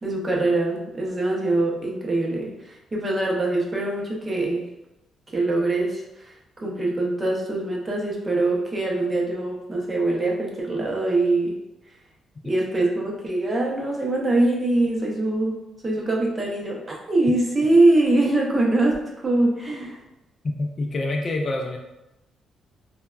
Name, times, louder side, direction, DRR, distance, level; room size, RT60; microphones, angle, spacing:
voice 1, 0.0-4.6 5.3-6.3 6.6-11.6 12.4-16.8 17.1-20.0, right 2 dB, 20° right, -2 dB, 0.6 m, -23 dB
voice 2, 20.4-21.8, left 2 dB, 35° left, 2 dB, 0.3 m, -26 dB
3.3 x 2.1 x 2.2 m, 0.94 s
cardioid pair, 125°, 0 cm